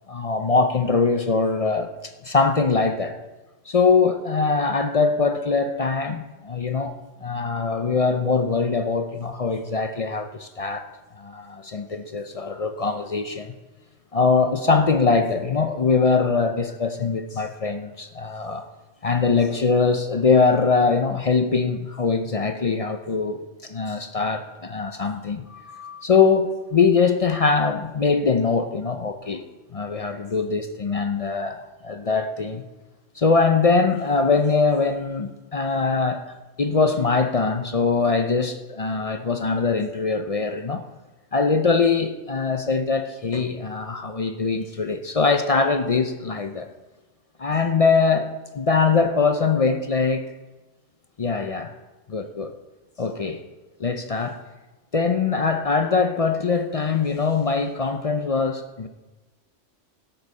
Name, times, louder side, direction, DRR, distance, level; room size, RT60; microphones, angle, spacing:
voice 1, 0.1-1.9 2.2-3.2 3.7-6.9 7.2-10.9 11.2-13.5 14.1-18.7 19.0-29.5 29.7-32.6 33.2-40.8 41.3-46.7 47.4-50.2 51.2-51.7 52.1-52.5 53.0-53.4 53.8-54.4 54.9-58.9, left 4 dB, 45° left, 0.4 m, -22 dB
13.5 x 7.9 x 5.4 m
omnidirectional pair, 1.3 m